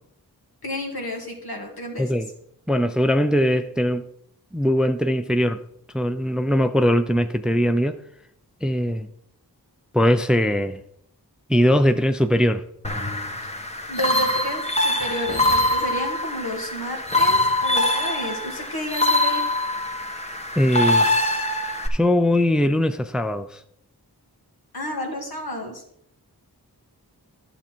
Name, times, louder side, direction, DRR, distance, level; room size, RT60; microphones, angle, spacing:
voice 1, 0.6-2.1 13.9-19.5 24.7-25.8, left 1 dB, 70° left, 2.2 m, -31 dB
voice 2, 2.0-2.3 2.7-4.1 4.5-5.6 5.9-8.0 8.6-9.1 9.9-10.8 11.5-12.7 20.6-21.1 21.9-23.6, equal, ahead, 0.6 m, -20 dB
sound 1, 12.8-21.9, left 1 dB, 15° left, 1.2 m, -23 dB
11.5 x 6.9 x 4.5 m
wide cardioid pair, 45°, 39 cm